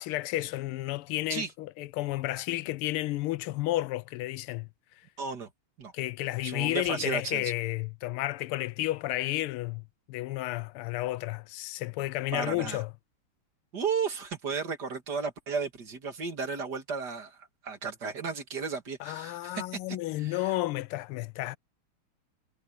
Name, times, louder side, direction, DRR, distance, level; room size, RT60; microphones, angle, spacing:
voice 1, 0.0-4.7 5.9-12.9 19.0-21.6, left 17 dB, 90° left, 1.6 m, -32 dB
voice 2, 5.2-5.5 5.8-5.9 6.4-7.5 12.3-12.8 13.7-19.8 20.2-20.6, right 5 dB, 50° right, 2.5 m, -34 dB
omnidirectional pair, 2.3 m